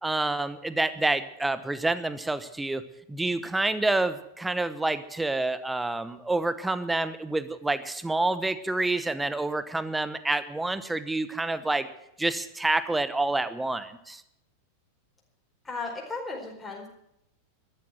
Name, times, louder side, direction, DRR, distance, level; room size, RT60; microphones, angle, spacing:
voice 1, 0.0-2.8 3.1-11.9 12.2-14.2, right 2 dB, 5° right, 13 dB, 1.0 m, -28 dB
voice 2, 15.6-16.9, left 3 dB, 10° left, -1 dB, 4.6 m, -35 dB
13.5 x 12.5 x 7.8 m, 0.80 s
figure-of-eight pair, 90°, 0 cm